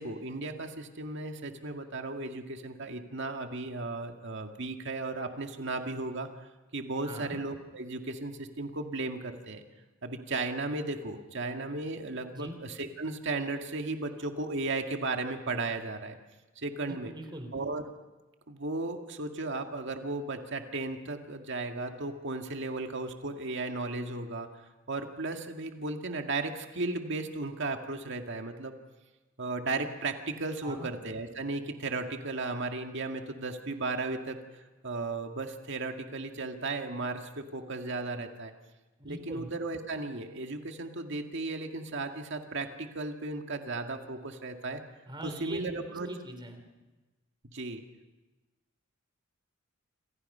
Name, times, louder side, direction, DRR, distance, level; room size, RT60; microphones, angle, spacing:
voice 1, 0.0-6.3 6.7-9.6 10.0-16.2 16.6-17.1 17.5-17.8 18.5-24.5 24.9-28.7 29.4-38.5 39.0-44.8 45.2-46.1 47.5-47.8, right 3 dB, 60° right, 4 dB, 2.0 m, -35 dB
voice 2, 7.0-7.4 12.3-12.6 16.9-17.6 30.6-30.9 39.0-39.5 45.1-45.6 45.9-46.7, right 1 dB, 20° right, 6 dB, 3.4 m, -42 dB
28.0 x 26.5 x 5.6 m, 1.2 s
head